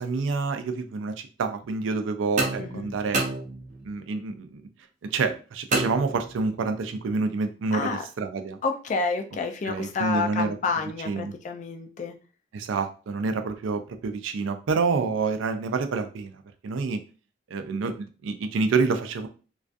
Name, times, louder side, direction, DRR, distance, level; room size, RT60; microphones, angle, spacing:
voice 1, 0.0-3.2 3.8-4.6 5.0-8.6 9.7-10.6 11.1-11.3 12.5-17.0 17.5-19.3, right 4 dB, 90° right, 8 dB, 0.4 m, -28 dB
sound 1, 2.4-4.0 5.7-6.7, right 2 dB, 40° right, 0.5 m, -30 dB
voice 2, 2.6-2.9 7.7-8.0 8.6-12.1, left 4 dB, 40° left, 5 dB, 0.3 m, -29 dB
2.3 x 2.3 x 2.5 m, 0.36 s
head